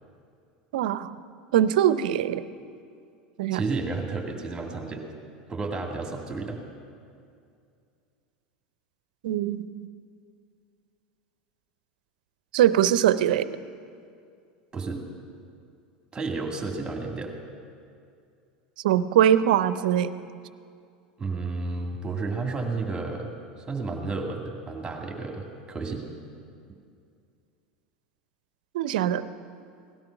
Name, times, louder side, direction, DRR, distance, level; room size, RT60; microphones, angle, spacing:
voice 1, 0.7-1.1 1.5-2.5 3.4-3.6 9.2-9.7 12.5-13.5 18.8-20.1 28.7-29.2, right 10 dB, 75° right, 14 dB, 0.6 m, -22 dB
voice 2, 3.5-5.1 5.5-6.6 14.7-15.0 16.1-17.3 21.2-23.3 23.7-26.1, right 3 dB, 20° right, 2 dB, 2.4 m, -31 dB
18.0 x 12.5 x 5.9 m, 2.4 s
hypercardioid pair, 95°, 5 cm